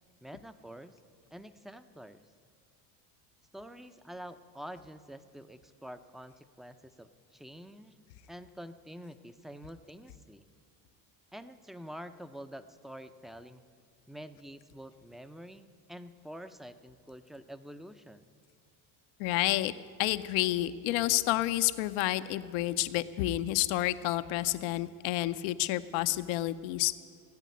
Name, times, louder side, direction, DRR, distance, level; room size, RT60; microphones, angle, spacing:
voice 1, 0.2-1.0 1.3-2.2 3.5-7.9 8.3-10.5 11.3-13.6 14.1-18.3, equal, ahead, 10 dB, 0.4 m, -47 dB
voice 2, 19.2-19.7 20.0-26.9, left 16 dB, 80° left, 13 dB, 0.7 m, -29 dB
15.0 x 8.3 x 9.3 m, 2.1 s
supercardioid pair, 105°, 46 cm